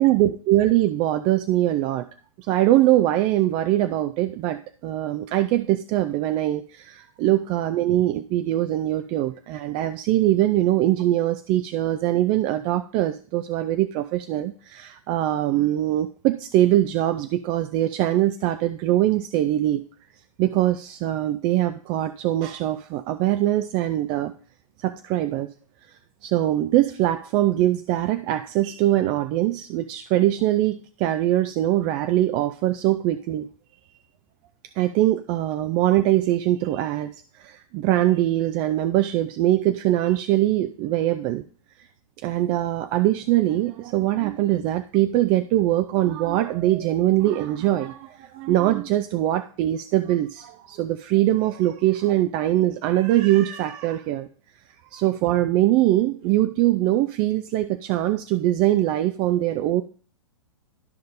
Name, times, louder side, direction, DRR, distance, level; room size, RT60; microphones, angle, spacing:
voice 1, 0.0-2.1 2.5-19.8 20.4-24.3 24.8-25.5 26.2-33.5 34.8-41.4 41.8-41.9 42.2-54.3 54.9-59.8, right 14 dB, 30° right, 11 dB, 0.4 m, -22 dB
13.0 x 5.2 x 2.6 m, 0.42 s
hypercardioid pair, 120°, 17 cm